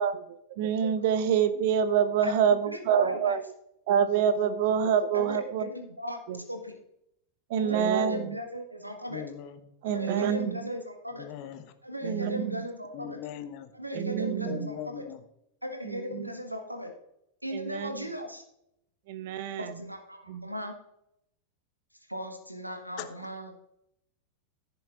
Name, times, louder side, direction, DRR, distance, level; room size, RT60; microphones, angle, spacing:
voice 1, 0.0-3.4 3.9-5.7 6.3-6.4 7.5-8.4 9.8-10.7 12.0-12.7 13.9-14.7 15.8-16.3 17.5-18.1 19.1-19.8 20.3-20.5, right 8 dB, 50° right, 12 dB, 0.8 m, -27 dB
voice 2, 2.2-3.3 5.1-6.8 7.6-9.2 9.9-11.3 11.8-13.2 13.7-15.0 15.6-16.9 17.4-18.4 19.6-20.7 22.1-23.6, equal, 90° right, 4 dB, 1.4 m, -37 dB
voice 3, 9.1-9.6 11.2-11.7 12.9-13.7 14.4-15.2 23.0-23.1, left 9 dB, 45° left, 10 dB, 0.9 m, -40 dB
14.5 x 6.9 x 2.5 m, 0.79 s
figure-of-eight pair, 90°, 0 cm